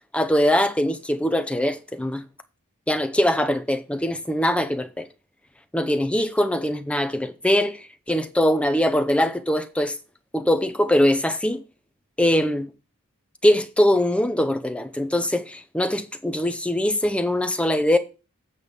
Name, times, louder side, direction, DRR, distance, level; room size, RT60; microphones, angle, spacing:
voice 1, 0.1-2.2 2.9-5.1 5.7-7.8 8.1-9.9 10.3-11.6 12.2-12.7 13.4-18.0, left 1 dB, 5° left, 0.8 m, -22 dB
8.3 x 5.3 x 5.4 m
head